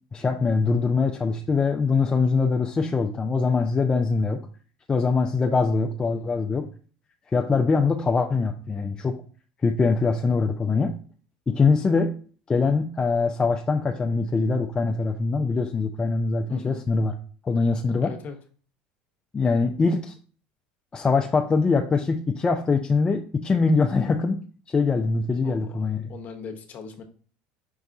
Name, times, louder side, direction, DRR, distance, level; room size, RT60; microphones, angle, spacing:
voice 1, 0.1-4.4 4.9-6.7 7.3-9.2 9.6-10.9 11.5-12.1 12.5-17.1 17.4-18.1 19.3-20.1 20.9-24.4 24.7-26.1, left 4 dB, 20° left, 3 dB, 0.4 m, -23 dB
voice 2, 6.0-6.5 16.5-16.8 18.0-18.4 25.4-25.8 26.1-27.0, left 5 dB, 45° left, 5 dB, 0.9 m, -40 dB
5.4 x 2.3 x 3.8 m, 0.42 s
supercardioid pair, 90°, 4 cm